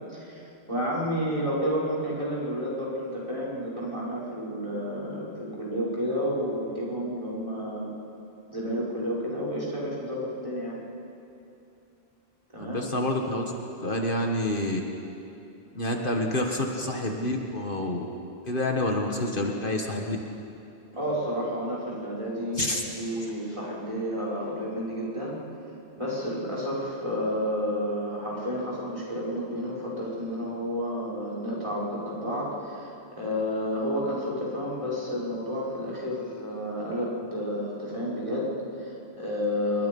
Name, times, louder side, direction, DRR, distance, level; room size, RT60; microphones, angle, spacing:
voice 1, 0.1-7.9 8.5-10.8 12.5-12.8 20.9-25.4 26.0-39.9, equal, 30° right, -6 dB, 5.9 m, -31 dB
voice 2, 12.6-13.5 13.8-14.8 15.7-18.1 18.5-20.2 22.5-22.8, left 1 dB, 55° left, 2 dB, 1.8 m, -28 dB
27.0 x 23.0 x 5.5 m, 2.7 s
omnidirectional pair, 1.1 m